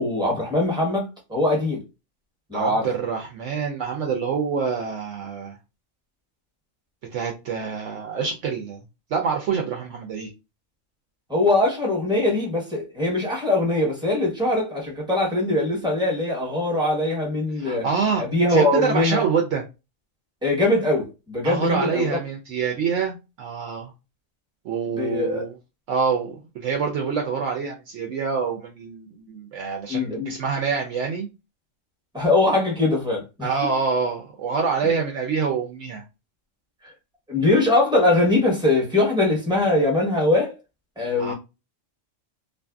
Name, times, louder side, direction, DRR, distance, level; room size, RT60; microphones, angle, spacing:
voice 1, 0.0-1.8 2.5-2.9 11.3-17.9 18.2-19.2 20.4-22.2 24.9-25.4 29.9-30.3 32.1-33.5 36.8-36.9 37.3-40.5 41.0-41.3, left 2 dB, 5° right, 0.9 m, -22 dB
voice 2, 2.5-5.6 7.1-8.8 9.1-10.3 17.6-18.2 18.5-19.6 21.4-23.9 24.6-25.6 25.9-31.3 33.4-36.0 41.2-41.3, right 5 dB, 70° right, 0.9 m, -26 dB
2.6 x 2.5 x 2.3 m
omnidirectional pair, 1.4 m